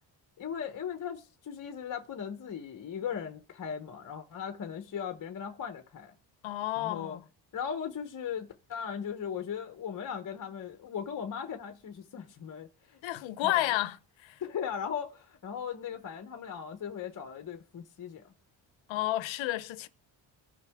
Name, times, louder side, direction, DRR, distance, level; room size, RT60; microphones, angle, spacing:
voice 1, 0.4-6.1 6.8-7.2 7.5-13.0 13.4-13.6 14.4-18.2, left 7 dB, 45° left, 1.0 m, -38 dB
voice 2, 6.4-7.2 13.0-14.4 18.9-19.9, left 15 dB, 90° left, 0.7 m, -31 dB
15.5 x 5.4 x 3.5 m
cardioid pair, 100°, 45 cm